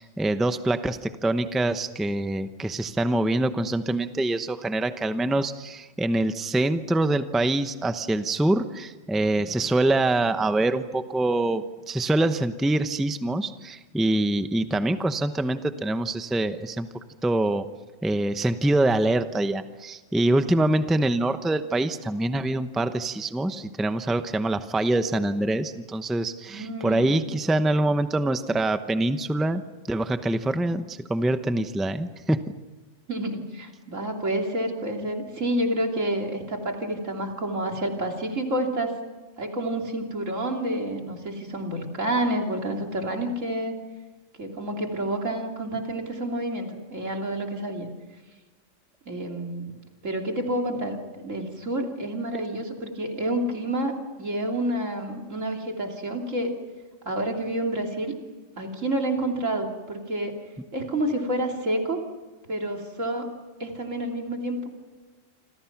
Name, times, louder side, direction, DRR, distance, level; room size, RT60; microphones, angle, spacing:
voice 1, 0.0-16.9 17.2-17.7 18.0-29.6 29.9-32.4, right 2 dB, ahead, 9 dB, 0.7 m, -25 dB
voice 2, 26.5-27.1 33.1-38.9 39.4-43.8 44.4-47.9 49.1-49.7 50.0-56.5 57.0-58.1 58.6-60.3 60.7-62.0 62.5-63.3 63.6-64.7, right 1 dB, 85° right, 2 dB, 3.4 m, -29 dB
28.0 x 26.5 x 6.0 m, 1.3 s
omnidirectional pair, 1.3 m